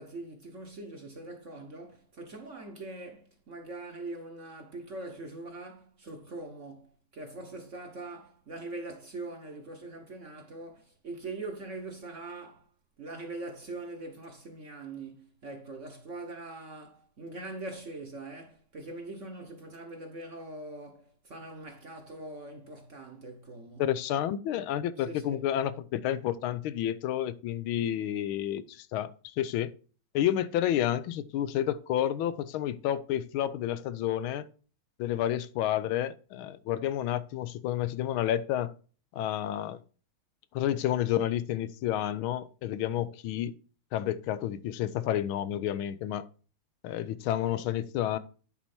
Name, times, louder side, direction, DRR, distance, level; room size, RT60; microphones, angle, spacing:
voice 1, 0.0-12.6 13.0-23.8 25.0-25.4, right 2 dB, 45° right, 1.1 m, -42 dB
voice 2, 23.8-29.7 30.1-34.5 35.0-38.7 39.1-39.8 40.5-43.5 43.9-46.3 46.8-48.2, left 11 dB, 80° left, 1.4 m, -30 dB
10.0 x 4.4 x 4.2 m
omnidirectional pair, 2.3 m